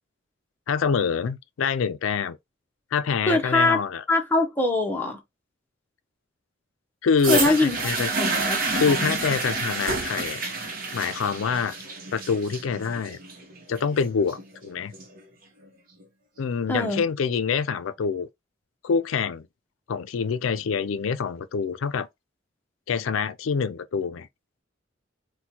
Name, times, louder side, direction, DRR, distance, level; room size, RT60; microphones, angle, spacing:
voice 1, 0.7-2.4 2.9-4.0 7.0-8.1 8.7-10.4 10.9-11.8 12.1-13.2 13.7-14.9 16.4-18.3 18.8-19.5 19.9-22.1 22.9-24.3, left 6 dB, 85° left, 0.4 m, -26 dB
voice 2, 3.3-3.8 4.1-5.2 7.3-7.8 8.2-9.2 16.7-17.0, left 2 dB, 10° left, 0.7 m, -23 dB
sound 1, 7.2-15.2 16.0-16.1, right 3 dB, 45° right, 0.9 m, -29 dB
4.2 x 2.2 x 2.8 m
head